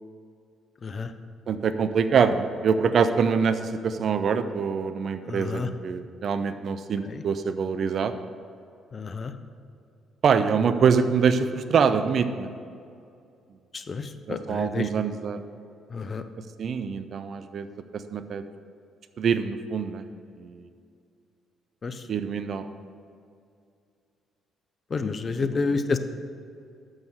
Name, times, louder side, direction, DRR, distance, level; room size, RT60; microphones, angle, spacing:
voice 1, 1.5-8.1 10.2-12.5 14.3-15.4 16.6-17.7 17.9-18.4 19.2-20.0 20.4-20.7 22.1-22.7 25.0-25.1 25.4-25.8, right 6 dB, 55° right, 11 dB, 0.5 m, -25 dB
voice 2, 5.3-5.7 7.1-7.2 8.9-9.3 13.7-14.9 15.9-16.2 21.8-22.0 24.9-26.0, left 4 dB, 40° left, 10 dB, 0.6 m, -29 dB
7.0 x 6.4 x 6.4 m, 2.4 s
hypercardioid pair, 45°, 0 cm